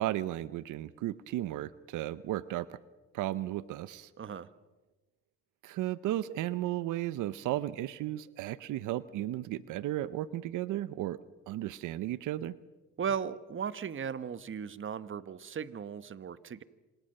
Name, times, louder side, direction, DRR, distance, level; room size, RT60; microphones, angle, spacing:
voice 1, 0.0-2.8 3.1-4.1 5.6-11.2 11.5-12.6, right 14 dB, 90° right, 17 dB, 0.8 m, -34 dB
voice 2, 4.2-4.5 13.0-16.6, right 7 dB, 40° right, 15 dB, 1.2 m, -37 dB
27.0 x 27.0 x 6.7 m, 1.1 s
cardioid pair, 90°, 30 cm